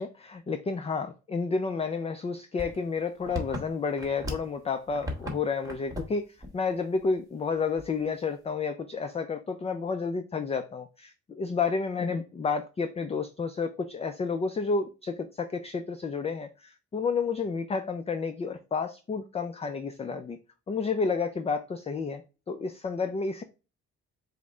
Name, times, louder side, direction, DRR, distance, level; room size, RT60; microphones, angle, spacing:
voice 1, 0.0-6.3 6.5-20.4 20.7-22.2 22.5-23.4, left 4 dB, 20° left, 0.4 m, -30 dB
sound 1, 2.6-4.6 4.9-5.4 5.6-6.1 6.4-6.6 7.0-7.1 7.8-8.2, left 1 dB, 10° right, 1.3 m, -36 dB
4.9 x 2.1 x 4.3 m
cardioid pair, 90°, 30 cm